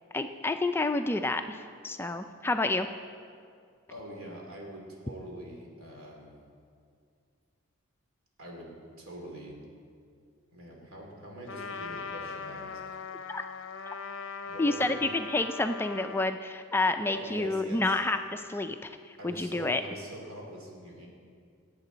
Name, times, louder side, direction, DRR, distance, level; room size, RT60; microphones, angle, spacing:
voice 1, 0.1-1.6 1.8-2.9 13.3-13.4 14.6-19.0 19.2-19.8, left 2 dB, 10° left, 7 dB, 0.3 m, -29 dB
voice 2, 3.9-6.4 8.4-8.7 9.0-9.6 10.5-12.8 14.4-14.9 17.1-18.0 19.2-21.1, right 1 dB, 90° right, -1 dB, 2.9 m, -44 dB
Trumpet, 11.5-16.4, left 5 dB, 70° left, 0.5 m, -40 dB
19.0 x 8.2 x 4.0 m, 2.2 s
head